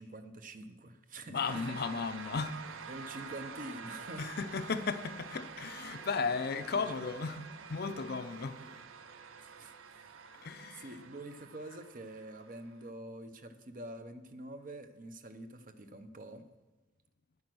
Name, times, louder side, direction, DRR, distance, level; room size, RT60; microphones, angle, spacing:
voice 1, 0.0-1.6 2.8-4.3 6.7-7.1 8.6-8.7 9.4-10.1 10.7-16.5, right 1 dB, 40° right, 0.7 m, -46 dB
voice 2, 1.3-2.5 4.2-8.6 10.4-10.9, left 5 dB, 50° left, 0.5 m, -35 dB
sound 1, 1.4-12.9, right 5 dB, 80° right, 0.6 m, -48 dB
9.6 x 9.4 x 6.1 m
head